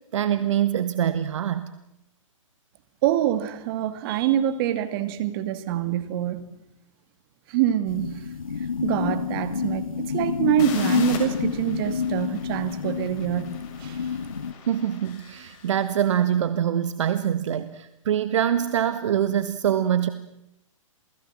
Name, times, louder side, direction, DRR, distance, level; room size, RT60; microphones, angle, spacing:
voice 1, 0.1-1.7 14.7-20.1, right 10 dB, 65° right, 1.5 m, -24 dB
voice 2, 3.0-6.5 7.5-8.3 8.8-14.2, right 12 dB, 45° right, 2.5 m, -25 dB
sound 1, 7.9-14.5, left 6 dB, 90° left, 1.9 m, -28 dB
sound 2, 10.6-16.3, left 6 dB, 40° left, 6.7 m, -42 dB
28.5 x 19.5 x 7.6 m
hypercardioid pair, 130°, 17 cm